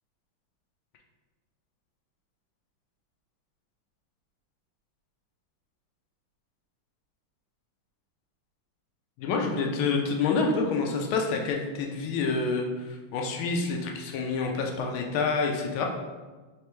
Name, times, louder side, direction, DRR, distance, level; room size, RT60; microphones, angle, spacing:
voice 1, 9.2-15.9, left 4 dB, 90° left, 2 dB, 1.4 m, -28 dB
4.3 x 3.3 x 3.0 m, 1.3 s
omnidirectional pair, 2.2 m